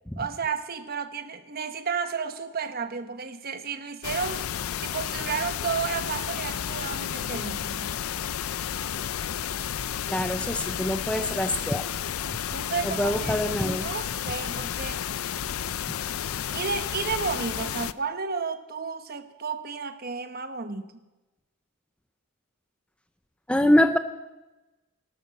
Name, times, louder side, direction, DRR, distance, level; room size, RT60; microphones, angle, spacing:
voice 1, 0.2-4.5 4.8-7.9 12.5-15.0 16.5-20.9, right 5 dB, 45° right, 9 dB, 1.1 m, -32 dB
sound 1, 4.0-17.9, left 9 dB, 85° left, 0.5 m, -32 dB
voice 2, 10.1-11.9 12.8-13.9 23.5-24.0, left 1 dB, 5° left, 9 dB, 0.5 m, -24 dB
16.0 x 12.5 x 7.1 m, 1.1 s
head